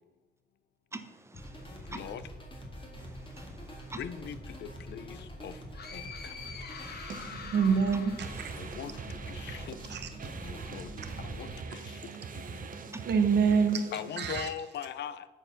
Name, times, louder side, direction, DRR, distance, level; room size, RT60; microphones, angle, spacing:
voice 1, 0.9-2.1 3.0-4.0 7.9-8.0 8.3-8.7 12.9-13.1, right 2 dB, 15° right, 0.7 m, -46 dB
sound 1, 1.3-11.6, equal, 30° left, 1.9 m, -45 dB
voice 2, 1.9-2.2 4.0-5.6 5.9-6.3 6.8-6.9 8.6-9.8 10.2-10.9 11.2-12.6 13.9-15.3, left 8 dB, 80° left, 0.5 m, -41 dB
sound 2, 5.7-9.4, left 5 dB, 65° left, 1.0 m, -45 dB
sound 3, 6.1-14.4, right 5 dB, 50° right, 0.7 m, -43 dB
voice 3, 7.5-8.3 9.9-10.1 13.1-13.8 14.2-14.5, right 6 dB, 75° right, 1.0 m, -25 dB
9.2 x 4.5 x 5.9 m
cardioid pair, 115°, 18 cm